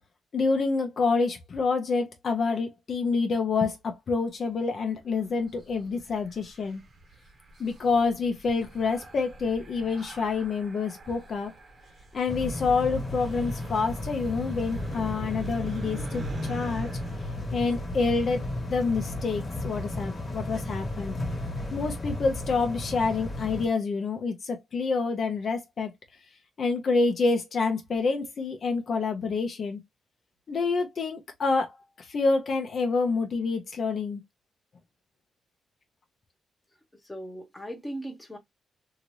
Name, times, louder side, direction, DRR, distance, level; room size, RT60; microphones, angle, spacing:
voice 1, 0.3-6.8 7.6-11.5 12.1-16.9 17.5-18.4 18.7-21.2 21.7-25.9 26.6-29.8 30.5-34.2, left 4 dB, 45° left, 0.7 m, -27 dB
sound 1, 5.1-19.0, right 1 dB, 35° right, 1.0 m, -45 dB
sound 2, 12.3-23.7, left 1 dB, 25° left, 1.5 m, -34 dB
voice 2, 37.0-38.4, right 1 dB, 5° left, 0.9 m, -38 dB
2.8 x 2.6 x 3.1 m
cardioid pair, 140°, 0 cm